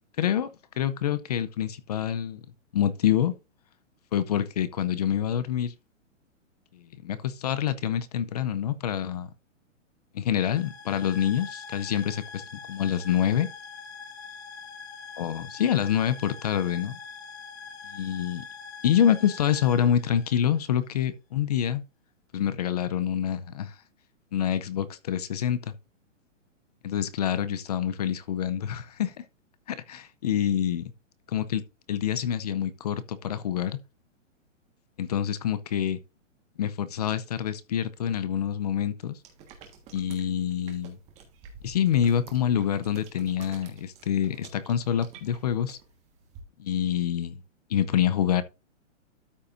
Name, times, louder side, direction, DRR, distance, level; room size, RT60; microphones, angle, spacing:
voice 1, 0.2-2.4 2.7-3.3 4.1-5.7 7.0-9.3 10.1-12.4 12.7-13.5 15.2-16.9 17.9-18.5 18.8-21.8 22.3-23.7 24.3-25.7 26.8-29.2 29.7-30.9 31.3-31.6 31.9-33.8 35.0-36.0 36.6-39.2 39.9-41.0 41.6-45.8 46.6-47.4 47.7-48.4, left 9 dB, 30° left, 0.5 m, -26 dB
sound 1, 10.3-20.9, left 6 dB, 55° left, 1.8 m, -43 dB
sound 2, 39.2-46.4, right 6 dB, 15° right, 1.4 m, -51 dB
13.0 x 5.2 x 2.6 m
hypercardioid pair, 160°, 38 cm